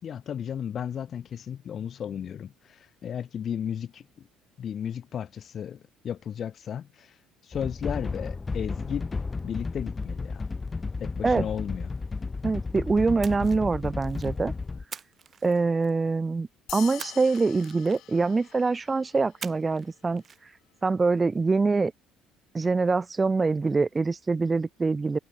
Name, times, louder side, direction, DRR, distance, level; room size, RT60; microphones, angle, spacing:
voice 1, 0.0-4.3 4.6-7.2 7.4-9.1 9.4-10.5 11.0-11.9, left 8 dB, 50° left, 2.1 m, -34 dB
sound 1, 7.5-14.8, left 4 dB, 25° left, 1.9 m, -33 dB
voice 2, 12.4-14.5 15.4-20.2 20.8-21.9 22.5-25.2, right 4 dB, 25° right, 0.5 m, -24 dB
Splash splatter, 13.2-14.4 14.9-16.1 17.0-18.3 19.4-19.9 20.2-20.4, right 6 dB, 40° right, 2.5 m, -44 dB
sound 2, 16.7-19.4, left 15 dB, 70° left, 5.3 m, -44 dB
supercardioid pair, 90°, 0 cm